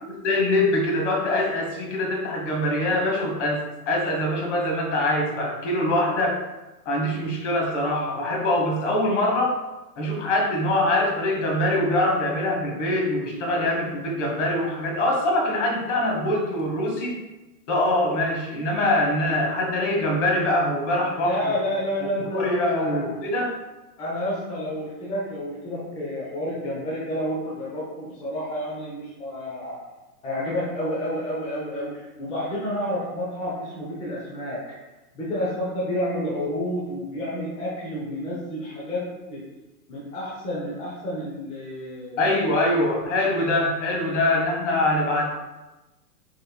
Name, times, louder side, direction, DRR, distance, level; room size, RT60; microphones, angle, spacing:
voice 1, 0.0-6.4 6.8-9.6 10.0-17.2 17.7-21.6 22.0-23.5 42.2-45.3, left 1 dB, 45° left, 0 dB, 1.3 m, -23 dB
voice 2, 21.2-23.1 24.0-29.8 30.2-34.6 35.1-39.0 39.3-39.4 39.9-42.3, left 1 dB, 10° left, -6 dB, 0.7 m, -30 dB
4.9 x 4.1 x 2.2 m, 1.1 s
hypercardioid pair, 125°, 48 cm